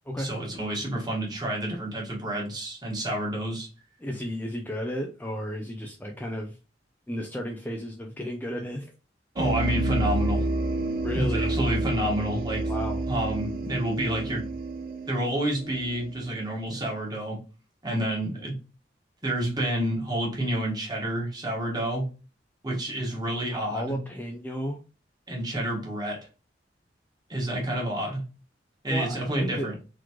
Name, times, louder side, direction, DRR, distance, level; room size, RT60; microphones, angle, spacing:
voice 1, 0.2-3.7 9.4-10.5 11.1-12.7 13.1-14.4 15.1-17.4 17.8-18.6 19.2-22.1 22.6-24.0 25.3-26.3 27.3-28.2 28.8-29.7, right 1 dB, 25° right, -2 dB, 1.6 m, -29 dB
voice 2, 4.0-6.6 7.1-8.9 11.0-11.5 12.7-13.0 23.5-24.8 28.9-29.7, equal, 10° left, 2 dB, 0.4 m, -33 dB
sound 1, 9.4-16.7, right 2 dB, 55° right, 0.5 m, -29 dB
4.1 x 3.0 x 3.0 m, 0.33 s
head